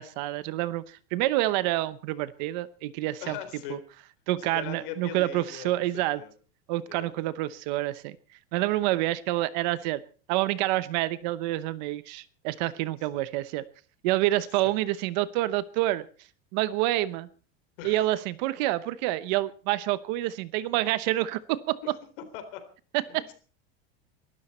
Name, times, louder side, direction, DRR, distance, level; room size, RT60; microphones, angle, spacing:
voice 1, 0.0-3.4 3.7-3.8 4.3-6.2 6.7-8.2 8.5-10.0 10.3-13.6 14.0-16.1 16.5-17.3 17.8-21.8 22.9-23.3, right 16 dB, 45° right, 16 dB, 0.9 m, -28 dB
voice 2, 3.2-3.8 4.4-6.3 6.9-7.1 17.8-18.1 21.8-22.0 22.3-22.6 23.1-23.3, left 10 dB, 60° left, 9 dB, 3.9 m, -40 dB
23.0 x 13.0 x 4.3 m, 0.40 s
supercardioid pair, 180°, 31 cm